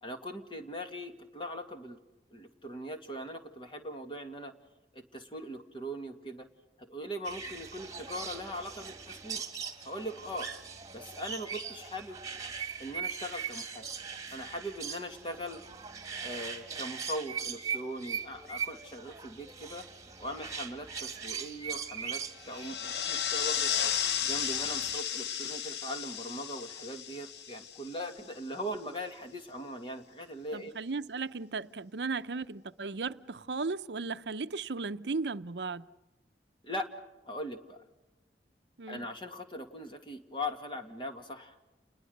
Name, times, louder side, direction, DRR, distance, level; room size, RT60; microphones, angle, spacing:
voice 1, 0.0-2.0 2.3-4.5 4.9-6.5 6.8-9.4 9.8-10.5 10.9-12.2 12.8-13.9 14.3-15.6 16.2-19.9 20.2-23.7 24.2-30.8 36.6-36.9 37.3-37.8 38.9-41.6, equal, 30° left, 2.2 m, -40 dB
sound 1, 7.2-25.0, right 6 dB, 20° right, 2.2 m, -41 dB
sound 2, 22.4-28.2, left 8 dB, 75° left, 0.9 m, -33 dB
voice 2, 30.5-35.8 38.8-39.1, right 4 dB, 80° right, 0.7 m, -36 dB
30.0 x 21.0 x 6.6 m
head